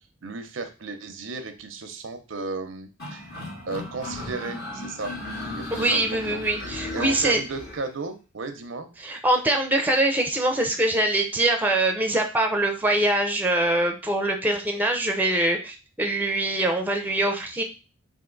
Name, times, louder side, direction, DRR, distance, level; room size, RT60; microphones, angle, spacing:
voice 1, 0.2-3.2 3.7-5.1 5.5-6.0 6.3-6.4 6.9-8.9, right 3 dB, 90° right, 7 dB, 0.6 m, -34 dB
sound 1, 3.0-7.8, left 2 dB, 55° left, 1.9 m, -36 dB
voice 2, 5.7-7.4 9.0-17.6, right 1 dB, 10° right, 4 dB, 0.5 m, -23 dB
3.4 x 2.5 x 3.8 m, 0.32 s
head